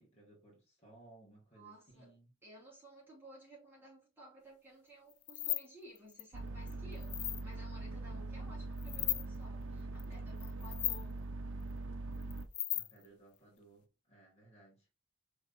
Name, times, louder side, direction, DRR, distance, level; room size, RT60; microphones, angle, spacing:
voice 1, 0.0-2.3 12.7-14.9, right 2 dB, 30° left, 2.0 m, -61 dB
voice 2, 1.5-2.1 2.4-11.2, equal, 10° right, 2.5 m, -56 dB
sound 1, 5.1-5.7 6.0-6.2 6.7-7.4 8.8-9.3 10.0-10.1 10.4-11.0 12.2-13.1, left 15 dB, 80° left, 0.4 m, -36 dB
sound 2, 6.3-12.5, right 2 dB, 60° right, 0.7 m, -42 dB
5.3 x 3.5 x 2.7 m
head